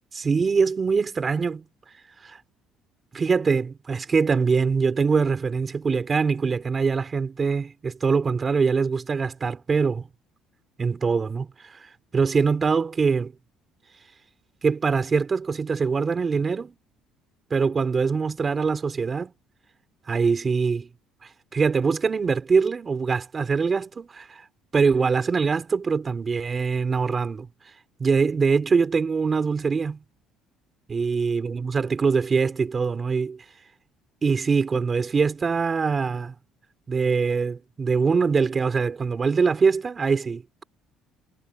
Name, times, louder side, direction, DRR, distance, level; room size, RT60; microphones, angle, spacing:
voice 1, 0.1-1.7 2.2-2.4 3.1-10.1 10.8-13.3 14.6-16.8 17.5-19.3 20.1-20.9 21.2-24.4 24.7-27.5 28.0-30.0 30.9-33.4 34.2-36.3 36.9-40.6, right 5 dB, 25° right, 3.8 m, -23 dB
cardioid pair, 150°, 0 cm